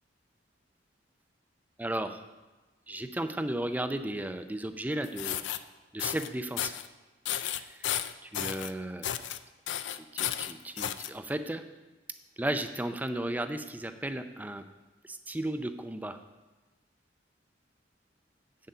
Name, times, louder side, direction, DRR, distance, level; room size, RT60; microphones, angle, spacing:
voice 1, 1.8-2.2 2.9-5.4 5.9-6.7 7.3-7.9 8.2-9.2 10.1-11.6 12.4-14.6 15.1-16.2, right 1 dB, 10° right, 9 dB, 0.4 m, -34 dB
sound 1, 5.0-5.6 6.0-6.3 6.6-6.9 7.3-8.7 9.0-9.4 9.7-11.1, left 11 dB, 70° left, 0.4 m, -33 dB
8.4 x 7.5 x 5.5 m, 1.2 s
head